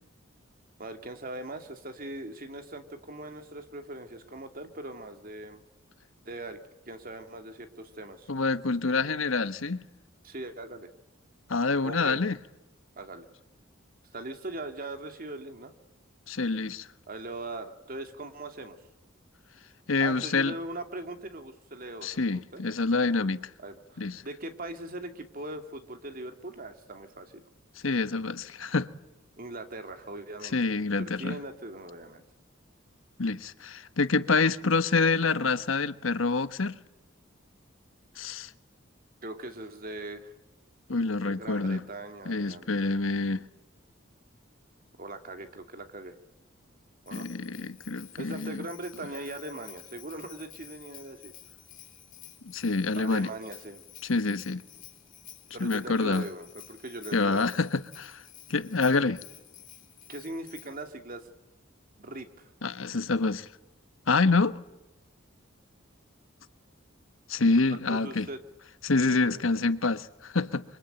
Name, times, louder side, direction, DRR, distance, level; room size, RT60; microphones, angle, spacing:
voice 1, 0.8-5.6 6.2-6.6 6.9-8.3 10.2-10.9 11.8-12.2 13.0-13.3 14.1-15.7 17.1-18.8 20.0-22.2 22.5-22.6 23.2-23.3 23.6-27.4 29.4-30.6 31.0-32.2 39.2-40.3 41.2-42.7 45.0-46.2 47.1-47.3 48.2-51.3 53.0-53.8 55.5-57.4 60.1-61.3 62.0-62.5 67.7-68.4 69.0-69.5, right 2 dB, 45° right, 2.4 m, -40 dB
voice 2, 8.3-9.8 11.5-12.4 16.3-16.9 19.9-20.5 22.0-23.5 24.0-24.2 27.8-28.9 30.5-31.4 33.2-36.8 38.2-38.5 40.9-41.8 42.3-43.4 47.1-48.7 52.4-53.3 54.0-54.6 55.6-56.3 57.1-58.2 58.5-59.2 62.6-63.5 64.1-64.6 67.3-68.3 68.8-70.6, left 3 dB, 85° left, 1.2 m, -27 dB
Bell, 47.1-60.9, left 12 dB, 45° left, 3.9 m, -51 dB
25.5 x 24.5 x 9.0 m
head